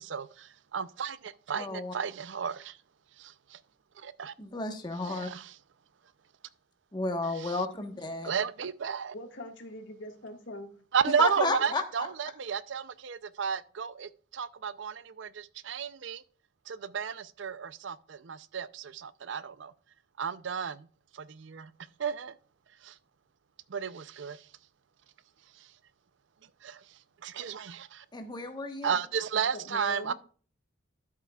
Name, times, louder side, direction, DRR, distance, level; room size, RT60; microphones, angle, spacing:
voice 1, 0.0-2.8 3.2-3.6 4.0-4.3 5.0-5.5 7.4-7.6 8.2-9.1 10.9-16.2 16.7-19.7 20.2-20.9 21.1-21.7 22.0-22.4 22.8-23.0 23.7-24.5 25.5-25.7 26.6-28.0 28.8-30.1, right 7 dB, 65° right, 0.5 m, -33 dB
voice 2, 1.5-1.9 4.4-5.3 6.9-8.3 11.2-11.8 28.1-28.9, left 3 dB, 20° left, 1.2 m, -32 dB
voice 3, 9.1-10.8 11.4-11.5 29.3-30.1, left 1 dB, 65° left, 1.7 m, -43 dB
12.5 x 7.4 x 2.3 m
head